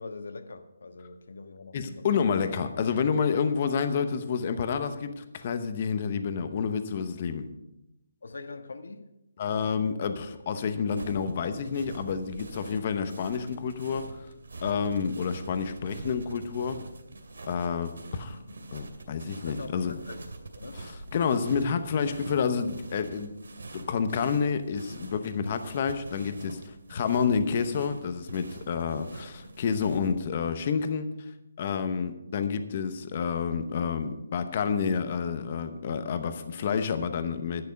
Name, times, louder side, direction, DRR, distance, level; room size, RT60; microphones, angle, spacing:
voice 1, 0.0-2.3 8.2-9.1 19.4-20.9, left 3 dB, 70° left, 8 dB, 1.3 m, -43 dB
voice 2, 1.7-7.5 9.4-14.2 14.6-16.8 17.5-18.4 18.7-19.9 20.7-23.3 23.7-26.6 26.9-31.1 31.6-37.6, left 6 dB, 25° left, 10 dB, 0.8 m, -29 dB
sound 1, 10.9-30.1, right 2 dB, 85° right, 2.3 m, -44 dB
11.0 x 10.5 x 5.3 m, 0.89 s
hypercardioid pair, 175°, 0 cm